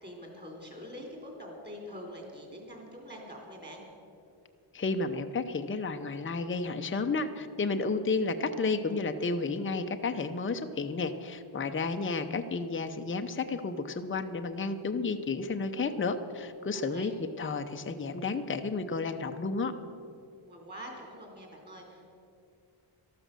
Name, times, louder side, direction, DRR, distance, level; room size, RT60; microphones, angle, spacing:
voice 1, 0.0-3.8 16.7-17.2 20.4-22.1, equal, 20° right, 1 dB, 3.6 m, -45 dB
voice 2, 4.7-19.7, left 3 dB, 25° left, 7 dB, 0.7 m, -32 dB
13.5 x 12.5 x 6.7 m, 2.5 s
wide cardioid pair, 135°, 49 cm